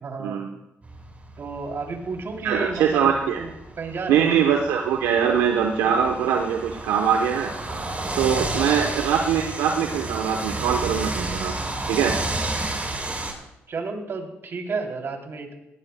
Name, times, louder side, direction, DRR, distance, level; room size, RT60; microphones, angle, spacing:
voice 1, 0.0-0.4 1.4-3.1 3.4-4.3 8.4-9.0 12.0-12.2 13.7-15.5, right 4 dB, 55° right, 2 dB, 3.0 m, -32 dB
sound 1, 0.8-13.3, right 2 dB, 30° right, 4.5 m, -32 dB
voice 2, 2.4-3.4 4.1-7.5 8.2-11.5 11.9-12.1, right 8 dB, 85° right, 3 dB, 0.9 m, -22 dB
17.5 x 17.0 x 2.2 m, 0.90 s
supercardioid pair, 50°, 5 cm